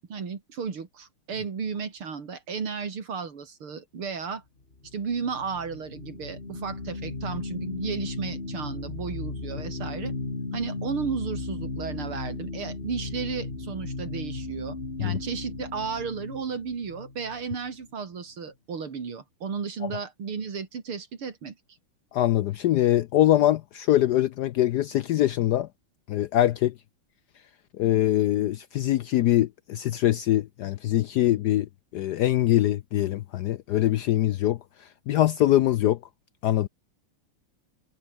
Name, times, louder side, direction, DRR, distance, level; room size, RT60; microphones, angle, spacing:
voice 1, 0.1-4.4 4.9-10.1 10.5-21.6, right 5 dB, 75° right, 3.6 m, -34 dB
sound 1, 4.7-17.9, left 3 dB, 25° left, 2.9 m, -36 dB
voice 2, 22.1-25.7 26.1-26.7 27.8-31.7 31.9-34.6 35.1-36.0 36.4-36.7, left 13 dB, 80° left, 0.9 m, -23 dB
omnidirectional pair, 2.4 m